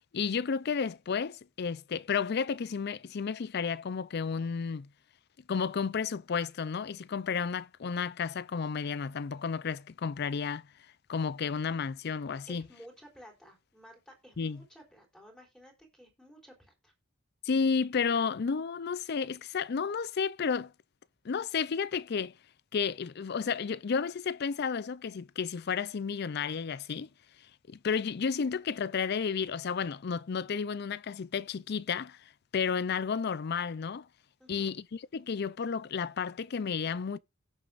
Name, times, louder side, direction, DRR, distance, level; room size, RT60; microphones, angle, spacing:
voice 1, 0.1-4.9 5.5-10.6 11.1-12.7 14.4-14.6 17.4-20.7 21.2-22.3 22.7-27.1 27.7-32.2 32.5-34.1 34.5-37.2, left 6 dB, 55° left, 0.4 m, -32 dB
voice 2, 12.5-16.9 34.4-34.8, equal, 5° left, 3.6 m, -54 dB
17.0 x 7.0 x 2.5 m
head